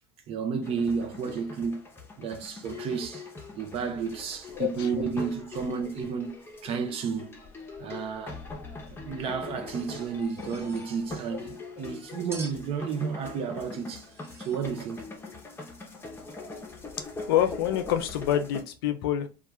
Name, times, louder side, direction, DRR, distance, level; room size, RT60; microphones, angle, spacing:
voice 1, 0.3-1.8 2.2-3.3 3.5-7.4 7.8-8.4 8.9-14.1 14.4-15.1, right 6 dB, 55° right, 0.6 m, -32 dB
sound 1, 0.6-18.6, left 3 dB, 20° left, 0.7 m, -42 dB
voice 2, 4.6-5.1 11.3-11.4 11.8-11.9 16.9-19.3, left 11 dB, 85° left, 0.4 m, -27 dB
sound 2, 10.2-10.9 12.3-12.7 14.0-14.7, right 2 dB, 20° right, 0.8 m, -45 dB
2.3 x 2.2 x 2.9 m
hypercardioid pair, 80°, 12 cm